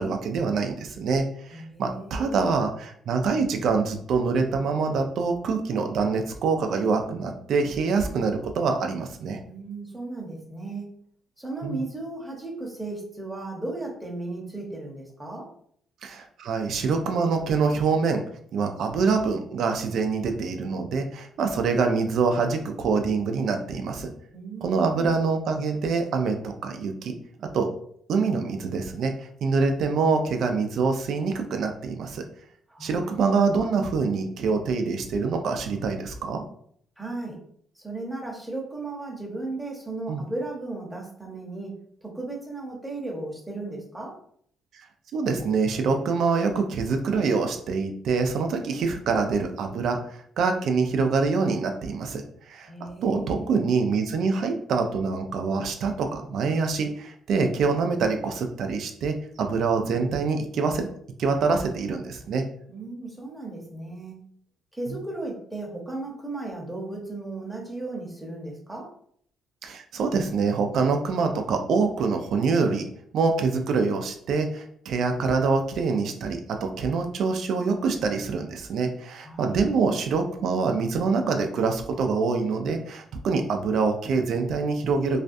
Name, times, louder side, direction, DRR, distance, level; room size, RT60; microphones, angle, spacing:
voice 1, 0.0-9.4 11.6-11.8 16.0-18.2 18.5-24.1 24.6-27.1 27.4-27.7 28.1-32.2 32.8-36.4 40.1-40.2 44.7-44.8 45.1-52.7 53.0-60.9 61.2-62.5 69.6-72.8 73.1-85.2, right 4 dB, 70° right, 5 dB, 0.4 m, -25 dB
voice 2, 1.5-2.5 9.4-10.8 11.4-15.5 24.3-25.2 32.7-33.1 37.0-37.4 37.8-44.2 52.7-53.6 62.7-64.2 64.7-68.9 79.2-79.6, right 2 dB, 5° right, -2 dB, 0.8 m, -35 dB
2.4 x 2.2 x 2.6 m, 0.63 s
cardioid pair, 90°, 0 cm